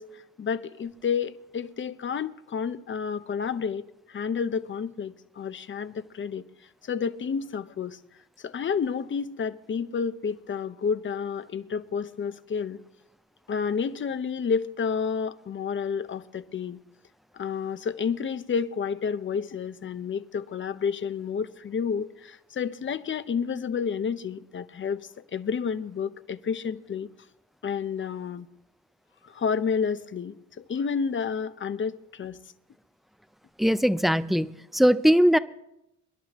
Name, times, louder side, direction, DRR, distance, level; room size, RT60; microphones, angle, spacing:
voice 1, 0.0-6.4 6.8-8.0 8.4-12.8 13.5-16.8 17.3-27.1 27.6-28.5 29.2-32.4, left 6 dB, 40° left, 0.8 m, -30 dB
voice 2, 33.6-35.4, equal, ahead, 0.5 m, -20 dB
27.0 x 11.0 x 3.0 m
cardioid pair, 90°, 30 cm